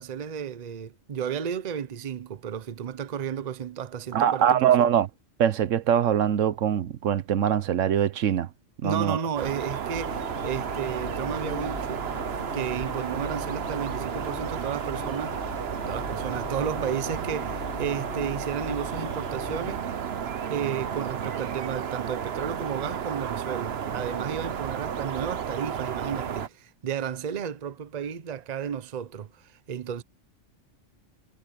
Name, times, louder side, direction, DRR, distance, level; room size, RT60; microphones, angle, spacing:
voice 1, 0.0-4.9 8.8-12.1 12.5-15.5 15.9-20.0 20.5-30.0, right 8 dB, 40° right, 0.8 m, -33 dB
voice 2, 4.1-5.1 5.4-8.5 8.8-9.2, right 9 dB, 80° right, 1.1 m, -23 dB
sound 1, 9.4-26.5, right 8 dB, 55° right, 1.1 m, -32 dB
sound 2, 9.9-19.8, left 4 dB, 50° left, 2.2 m, -40 dB
omnidirectional pair, 1.3 m